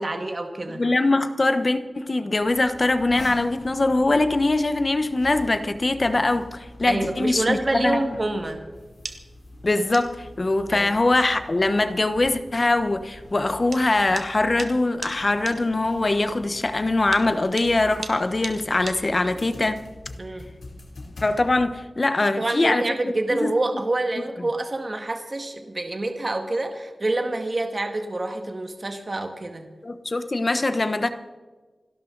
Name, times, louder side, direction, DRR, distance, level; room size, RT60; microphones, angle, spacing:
voice 1, 0.0-0.8 6.9-8.6 10.7-10.9 20.2-20.5 22.3-29.7, right 2 dB, 35° right, 5 dB, 1.9 m, -27 dB
voice 2, 0.7-8.0 9.6-19.8 21.2-23.5 29.8-31.1, left 2 dB, 40° left, 10 dB, 1.1 m, -22 dB
sound 1, 2.4-21.7, left 1 dB, 80° left, 3.2 m, -44 dB
sound 2, 8.8-19.5, right 4 dB, 75° right, 1.5 m, -41 dB
29.0 x 12.0 x 4.0 m, 1.3 s
wide cardioid pair, 100°, 0 cm